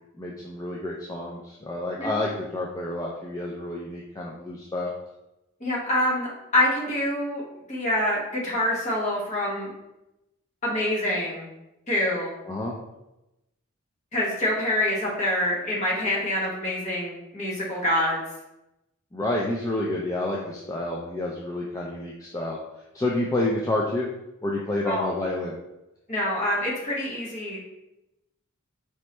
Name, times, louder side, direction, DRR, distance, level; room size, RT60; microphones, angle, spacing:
voice 1, 0.2-4.9 12.4-12.7 19.1-22.6 22.9-24.1 24.4-25.6, left 2 dB, 15° left, -3 dB, 0.4 m, -29 dB
voice 2, 5.6-7.4 7.7-9.7 10.6-11.5 11.9-12.3 14.1-18.2 24.8-25.1 26.1-27.6, left 1 dB, 35° left, -4 dB, 1.2 m, -26 dB
4.4 x 3.0 x 3.2 m, 0.92 s
head